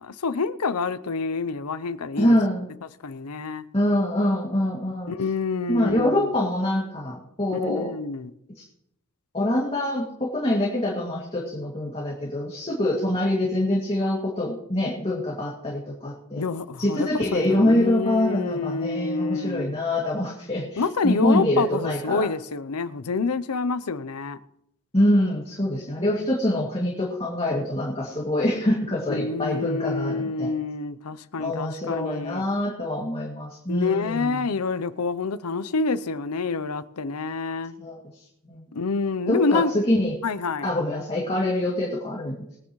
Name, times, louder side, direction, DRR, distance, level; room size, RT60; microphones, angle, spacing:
voice 1, 0.0-2.3 3.0-3.6 5.1-6.3 7.5-8.3 16.4-19.8 20.8-24.4 29.1-32.4 33.7-37.7 38.7-39.7 40.2-40.7, left 4 dB, 90° left, 0.7 m, -27 dB
voice 2, 2.2-2.7 3.7-5.1 5.7-7.9 8.6-8.7 9.3-16.4 16.8-22.3 24.9-30.5 31.4-34.4 37.8-38.6 39.3-40.1 40.6-42.4, left 1 dB, 25° left, 2.4 m, -25 dB
22.0 x 9.7 x 3.2 m
head